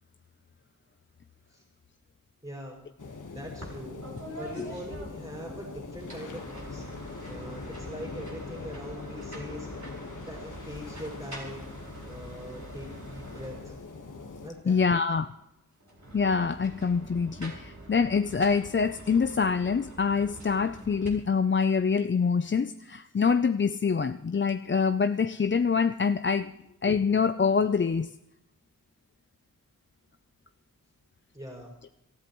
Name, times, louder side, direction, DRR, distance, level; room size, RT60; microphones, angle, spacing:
voice 1, 2.4-2.8 3.3-4.0 4.4-9.7 10.3-11.7 12.0-13.7 14.4-14.8 31.3-31.7, equal, 20° right, 5.8 m, -42 dB
sound 1, 3.0-14.5, left 3 dB, 65° left, 1.5 m, -42 dB
sound 2, 3.6-5.6 6.0-14.0 15.8-21.1, right 1 dB, 55° right, 4.5 m, -45 dB
voice 2, 14.7-15.3 16.1-26.5 26.8-28.1, left 5 dB, 35° left, 0.5 m, -25 dB
26.0 x 13.5 x 3.1 m
wide cardioid pair, 70°, 33 cm